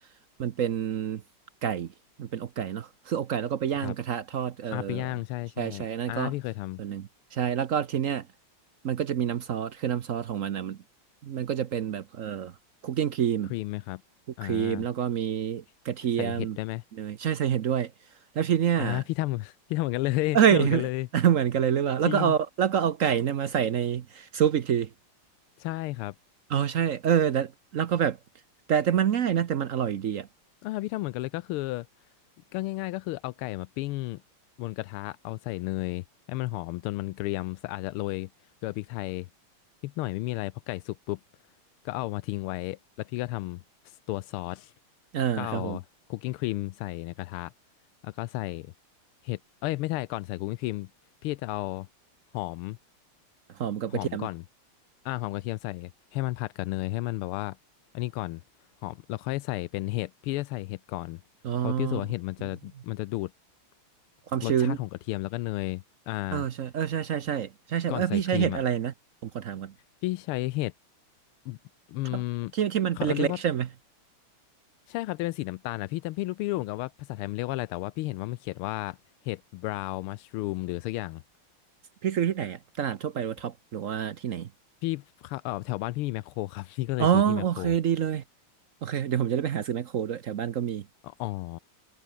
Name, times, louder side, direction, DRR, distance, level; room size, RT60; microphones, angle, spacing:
voice 1, 0.4-1.2 1.6-1.9 2.2-5.1 5.6-6.3 6.8-8.3 8.8-10.8 11.2-12.5 12.8-13.5 14.4-16.6 16.9-17.9 18.3-19.0 20.3-20.9 21.1-24.9 26.5-28.2 28.7-30.3 45.1-45.8 53.5-54.3 61.4-62.0 62.4-62.5 64.3-64.8 66.3-68.9 69.2-69.7 72.1-72.2 72.5-73.7 82.0-84.5 87.0-88.2 88.8-90.9, right 9 dB, 65° right, 0.7 m, -27 dB
voice 2, 4.7-6.8 13.5-14.0 14.4-14.9 16.2-16.8 18.8-21.1 22.1-22.3 25.6-26.1 30.6-31.9 32.5-34.2 34.6-38.3 38.6-39.3 39.8-41.2 41.8-44.7 45.3-45.8 46.1-47.5 48.0-48.7 49.2-50.9 51.2-51.9 52.3-52.8 53.9-54.4 55.0-57.6 57.9-58.4 58.8-61.2 61.6-63.3 64.4-66.4 67.9-68.6 70.0-70.7 71.5-71.6 71.9-72.5 73.0-73.4 74.9-79.0 79.2-81.2 84.8-87.7 91.0-91.6, left 18 dB, 85° left, 1.5 m, -32 dB
omnidirectional pair, 2.4 m